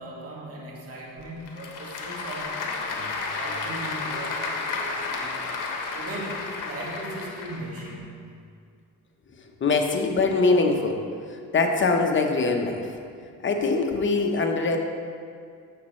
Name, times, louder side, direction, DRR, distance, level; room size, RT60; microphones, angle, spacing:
voice 1, 0.0-5.4 5.9-8.2, right 1 dB, 40° right, -4 dB, 2.0 m, -38 dB
Applause / Crowd, 1.2-7.9, left 4 dB, 60° left, 1.2 m, -32 dB
voice 2, 9.6-11.0 11.5-12.9 13.4-14.8, left 3 dB, 35° left, 3 dB, 0.9 m, -22 dB
10.5 x 7.3 x 3.2 m, 2.3 s
cardioid pair, 100°, 35 cm